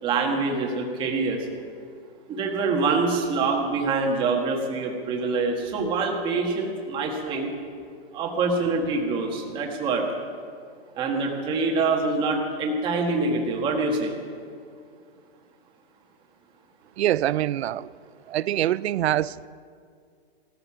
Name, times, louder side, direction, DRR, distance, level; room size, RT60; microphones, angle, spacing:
voice 1, 0.0-1.4 2.3-7.5 8.1-10.1 10.9-14.2, right 3 dB, 15° right, 1.5 m, -25 dB
voice 2, 17.0-17.9 18.3-19.5, right 13 dB, 85° right, 0.5 m, -24 dB
17.5 x 13.5 x 5.8 m
hypercardioid pair, 170°, 32 cm